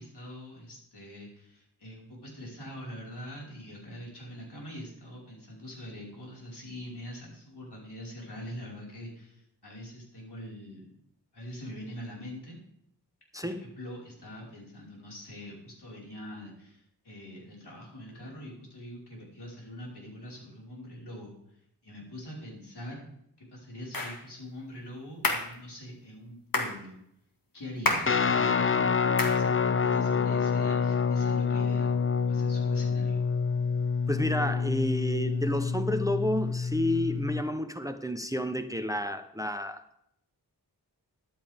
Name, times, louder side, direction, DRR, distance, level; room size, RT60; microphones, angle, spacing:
voice 1, 0.0-10.9 11.3-12.6 13.4-21.4 21.8-23.1 23.4-26.9 27.5-31.9 32.3-33.2, equal, 80° left, -3 dB, 5.3 m, -43 dB
sound 1, 23.9-24.2 25.2-25.5 26.5-26.8 27.8-28.2 29.2-29.4, left 2 dB, 60° left, 2.1 m, -28 dB
Guitar, 28.1-37.4, left 5 dB, 35° left, 0.6 m, -27 dB
voice 2, 34.1-39.8, left 1 dB, 10° right, 8 dB, 0.9 m, -30 dB
14.0 x 11.5 x 3.6 m, 0.73 s
wide cardioid pair, 65°, 39 cm